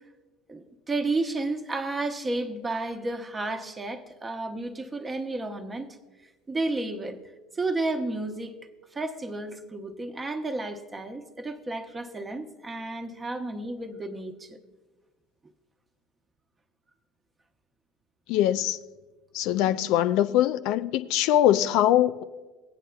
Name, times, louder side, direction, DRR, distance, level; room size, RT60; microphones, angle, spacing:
voice 1, 0.5-6.0 6.5-7.2 7.6-8.5 8.9-14.6, right 2 dB, 20° right, 0.9 m, -32 dB
voice 2, 18.3-18.8 19.3-22.2, left 12 dB, 60° left, 0.3 m, -22 dB
17.0 x 9.2 x 2.3 m
hypercardioid pair, 70°, 0 cm